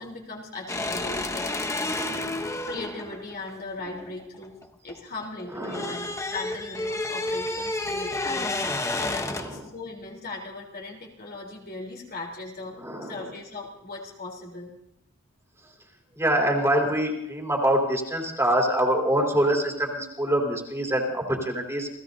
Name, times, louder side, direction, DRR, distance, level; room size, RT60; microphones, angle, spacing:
voice 1, 0.0-2.0 2.7-4.5 4.8-8.5 9.0-14.7, left 2 dB, 50° left, -1 dB, 3.7 m, -38 dB
sound 1, 0.7-4.9 5.2-9.6, left 2 dB, 15° left, 0.9 m, -30 dB
voice 2, 1.9-2.5 5.5-5.9 9.2-9.6 12.8-13.3 16.2-21.9, right 1 dB, 15° right, -1 dB, 3.4 m, -25 dB
30.0 x 17.0 x 2.7 m, 0.84 s
head